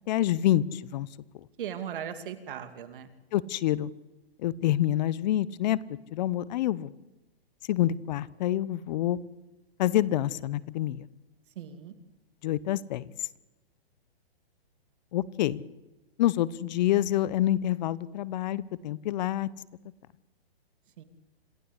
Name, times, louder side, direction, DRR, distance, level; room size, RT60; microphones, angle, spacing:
voice 1, 0.1-1.1 1.4-1.5 3.3-3.9 4.4-5.8 6.1-6.9 7.7-9.2 9.8-11.1 12.4-13.3 15.1-15.6 16.2-19.5, left 13 dB, 45° left, 21 dB, 1.0 m, -27 dB
voice 2, 1.6-3.1 11.6-11.9 21.0-21.1, right 9 dB, 55° right, 10 dB, 2.7 m, -38 dB
26.5 x 16.0 x 8.2 m, 1.1 s
hypercardioid pair, 135°, 31 cm